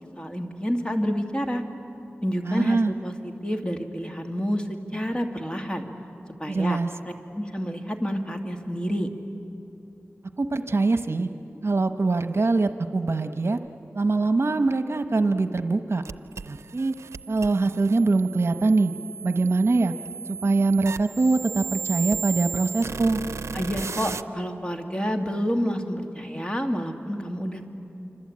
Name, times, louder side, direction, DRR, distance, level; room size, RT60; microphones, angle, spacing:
voice 1, 0.2-1.6 2.2-5.9 6.4-6.8 7.3-9.1 23.5-27.7, equal, 20° left, 4 dB, 2.3 m, -28 dB
voice 2, 2.4-2.9 6.5-6.9 10.4-11.3 11.6-13.6 13.9-16.0 16.5-16.9 17.3-18.9 19.2-19.9 20.3-23.2, right 3 dB, 65° right, 9 dB, 1.0 m, -23 dB
sound 1, 16.0-24.2, right 6 dB, 85° right, 0.5 m, -35 dB
26.0 x 26.0 x 8.7 m, 2.8 s
wide cardioid pair, 50°, 5 cm